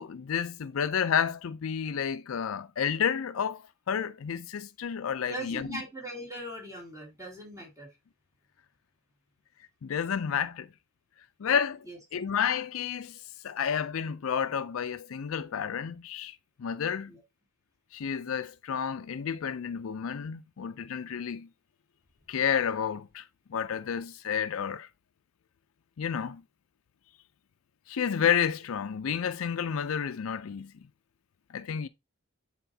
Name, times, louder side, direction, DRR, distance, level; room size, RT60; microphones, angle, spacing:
voice 1, 0.0-5.8 9.8-10.7 11.4-11.8 12.1-13.2 13.4-17.1 17.9-21.5 22.3-23.2 23.5-24.9 26.0-26.4 27.9-30.7 31.5-31.9, left 7 dB, 80° left, 0.4 m, -30 dB
voice 2, 5.3-7.9 11.8-12.0 17.1-17.2, right 1 dB, 15° right, 2.8 m, -40 dB
9.1 x 4.1 x 2.7 m
head